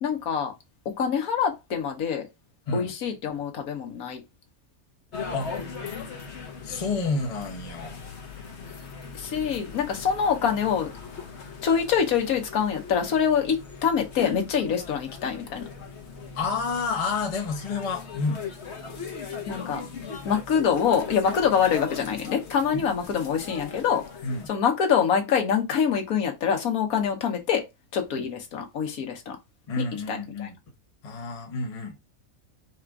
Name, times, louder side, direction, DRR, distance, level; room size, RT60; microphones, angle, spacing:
voice 1, 0.0-0.5 0.8-2.3 2.7-4.2 9.1-10.9 11.6-15.6 19.5-19.8 20.2-24.0 24.5-27.6 27.9-29.4 29.8-30.5, left 7 dB, 85° left, 1.5 m, -25 dB
sound 1, 5.1-24.5, left 5 dB, 55° left, 1.1 m, -39 dB
voice 2, 6.6-8.0 16.3-18.4 22.7-22.8 24.2-24.5 28.2-28.3 29.7-30.5 31.0-32.0, left 4 dB, 30° left, 0.8 m, -29 dB
4.2 x 2.5 x 4.6 m
omnidirectional pair, 1.5 m